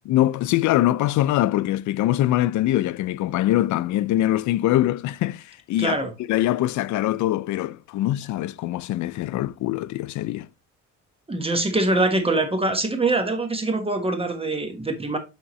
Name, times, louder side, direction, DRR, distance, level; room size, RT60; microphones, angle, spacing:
voice 1, 0.1-6.0 6.3-10.5, left 14 dB, 70° left, 0.4 m, -23 dB
voice 2, 5.8-6.1 11.3-15.2, right 2 dB, 20° right, 1.3 m, -23 dB
8.8 x 3.7 x 3.1 m
cardioid pair, 90°, 30 cm